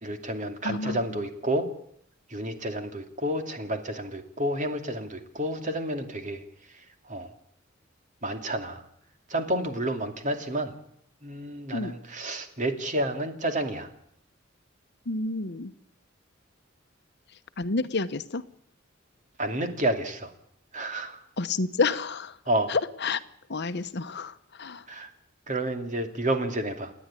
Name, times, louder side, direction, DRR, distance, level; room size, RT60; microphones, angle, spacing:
voice 1, 0.0-1.7 2.3-6.4 7.0-7.3 8.2-8.8 9.3-10.7 11.2-13.9 19.4-20.3 20.7-21.2 22.5-22.7 24.9-25.1 25.5-26.9, right 1 dB, 40° right, 6 dB, 2.6 m, -30 dB
voice 2, 0.6-1.3 11.7-11.9 15.1-15.7 17.6-18.4 21.4-22.4 22.7-23.2 23.5-24.9, left 3 dB, 60° left, 12 dB, 1.0 m, -29 dB
29.5 x 10.5 x 9.8 m, 0.68 s
head